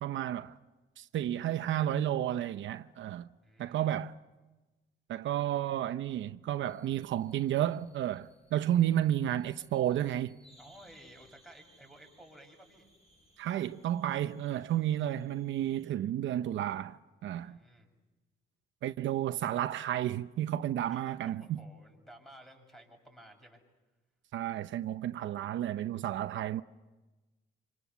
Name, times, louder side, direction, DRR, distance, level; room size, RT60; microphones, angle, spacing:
voice 1, 0.0-0.6 1.0-3.3 3.6-4.1 5.1-10.4 13.4-17.0 17.2-17.6 18.8-21.6 24.3-26.6, right 11 dB, 75° right, 0.8 m, -32 dB
voice 2, 3.4-4.0 8.7-9.2 10.6-12.9 17.4-17.9 20.9-23.6, right 1 dB, ahead, 7.3 m, -55 dB
sound 1, 6.6-15.9, equal, 30° left, 6.1 m, -65 dB
27.5 x 26.0 x 7.1 m
cardioid pair, 90°, 20 cm